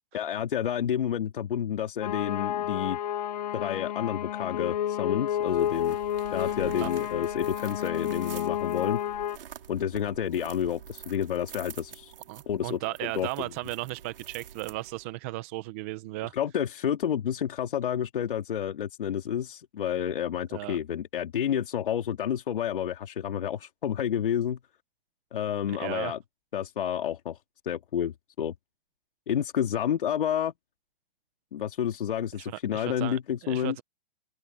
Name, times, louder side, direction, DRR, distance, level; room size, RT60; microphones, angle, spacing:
voice 1, 0.1-3.0 3.5-6.0 6.3-9.0 9.7-12.1 12.5-13.5 16.3-24.6 25.3-26.2 26.5-27.4 27.6-28.5 29.3-30.5 31.5-33.8, left 9 dB, 65° left, 2.5 m, -30 dB
sound 1, 2.0-9.4, left 10 dB, 45° left, 0.9 m, -30 dB
sound 2, 5.3-15.2, right 9 dB, 70° right, 3.7 m, -47 dB
voice 2, 12.3-16.3 20.5-20.8 25.7-26.1 32.5-33.8, right 18 dB, 15° right, 0.6 m, -36 dB
open air
hypercardioid pair, 170°, 29 cm